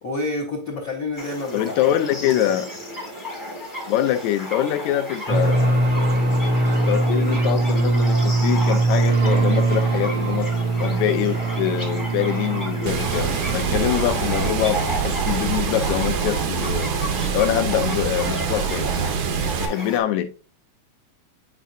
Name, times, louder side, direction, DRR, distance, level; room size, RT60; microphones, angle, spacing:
voice 1, 0.0-1.8 2.2-2.4 13.6-13.9, left 2 dB, 60° left, 0.9 m, -29 dB
sound 1, 1.1-20.0, equal, 20° left, 0.5 m, -33 dB
voice 2, 1.5-2.7 3.9-5.9 6.9-10.5 10.8-16.9 17.3-18.9 19.6-20.3, left 12 dB, 80° left, 2.0 m, -24 dB
sound 2, 5.3-14.8, right 2 dB, 45° right, 0.4 m, -22 dB
Water, 12.9-19.7, right 6 dB, 90° right, 2.5 m, -25 dB
9.0 x 4.5 x 2.6 m
omnidirectional pair, 3.3 m